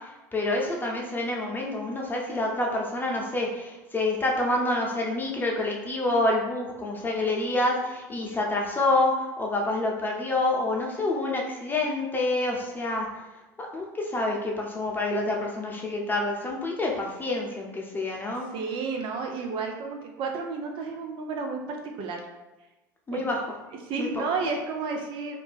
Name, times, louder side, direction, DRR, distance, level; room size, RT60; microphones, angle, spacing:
voice 1, 0.0-13.1 13.6-18.5 23.1-23.4 24.0-24.2, left 2 dB, 20° left, -1 dB, 0.7 m, -27 dB
voice 2, 18.5-22.2 23.1-23.2 23.8-25.4, right 4 dB, 55° right, 2 dB, 0.4 m, -31 dB
2.6 x 2.1 x 3.4 m, 1.1 s
hypercardioid pair, 75°, 10 cm